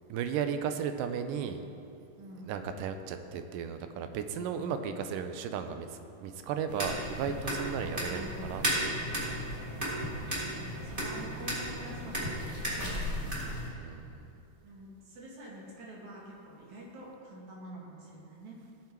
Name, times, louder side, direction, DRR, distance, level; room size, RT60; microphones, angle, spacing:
voice 1, 0.1-1.6 2.5-5.9 6.2-8.9 13.8-14.3, right 7 dB, 85° right, 8 dB, 2.2 m, -35 dB
voice 2, 2.2-2.7 8.1-9.1 10.3-13.3 14.6-18.6, right 1 dB, 65° right, -3 dB, 3.0 m, -47 dB
sound 1, 6.7-13.7, equal, 20° right, 1.8 m, -34 dB
17.0 x 5.8 x 4.5 m, 2.6 s
omnidirectional pair, 3.8 m